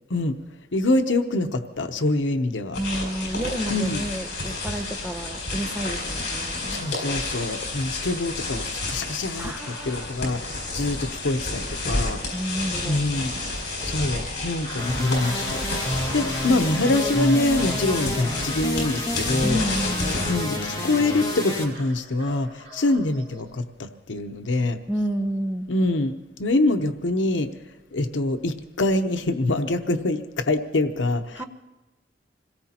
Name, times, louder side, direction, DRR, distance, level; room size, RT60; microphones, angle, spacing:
voice 1, 0.7-2.8 3.7-4.0 6.7-12.2 12.9-13.3 13.8-15.6 16.1-19.6 20.3-24.8 25.7-26.1 26.4-27.5 27.9-31.4, left 2 dB, 90° left, 7 dB, 0.8 m, -25 dB
sound 1, 2.7-20.3, left 2 dB, 60° left, 6.5 m, -31 dB
voice 2, 2.7-6.8 9.4-10.2 12.3-13.0 16.2-16.6 19.4-20.3 24.9-25.7 31.3-31.4, equal, 10° right, 5 dB, 0.8 m, -30 dB
sound 2, 13.8-23.4, right 1 dB, 35° right, 7.2 m, -44 dB
sound 3, 14.8-21.6, left 1 dB, 20° left, 2.0 m, -29 dB
26.5 x 18.0 x 2.9 m, 1.1 s
head